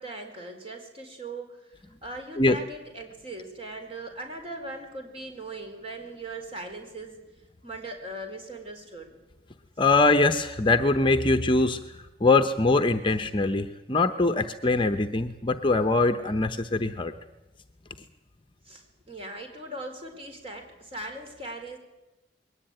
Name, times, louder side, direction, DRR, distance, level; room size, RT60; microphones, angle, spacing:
voice 1, 0.0-1.6 2.0-7.2 7.6-9.1 18.7-21.8, right 2 dB, 30° right, 4 dB, 4.4 m, -39 dB
voice 2, 9.8-11.8 12.2-17.1, left 3 dB, 25° left, 8 dB, 0.9 m, -22 dB
22.0 x 18.5 x 9.0 m, 1.0 s
head